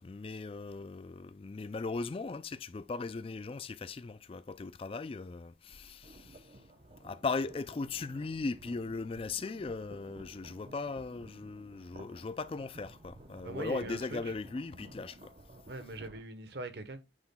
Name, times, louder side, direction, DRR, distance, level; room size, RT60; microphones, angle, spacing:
voice 1, 0.0-6.6 7.0-15.3, left 4 dB, 30° left, 0.3 m, -38 dB
sound 1, 5.7-16.2, right 1 dB, 35° right, 0.8 m, -54 dB
voice 2, 13.4-14.2 15.7-17.0, right 2 dB, 60° right, 1.1 m, -41 dB
8.7 x 5.7 x 2.2 m
head